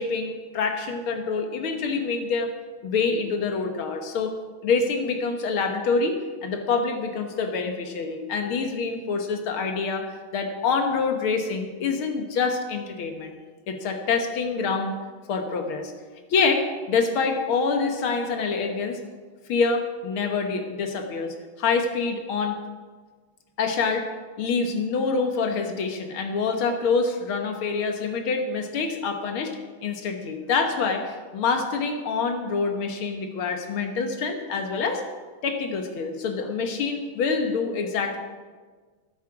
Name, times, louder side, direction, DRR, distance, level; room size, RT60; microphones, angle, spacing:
voice 1, 0.0-2.5 2.8-4.3 4.6-13.3 13.7-14.9 15.3-15.9 16.3-19.0 19.5-22.6 23.6-24.1 24.4-29.6 29.8-35.0 35.4-38.2, left 4 dB, 80° left, 5 dB, 2.2 m, -26 dB
12.5 x 12.5 x 4.9 m, 1.5 s
omnidirectional pair, 2.3 m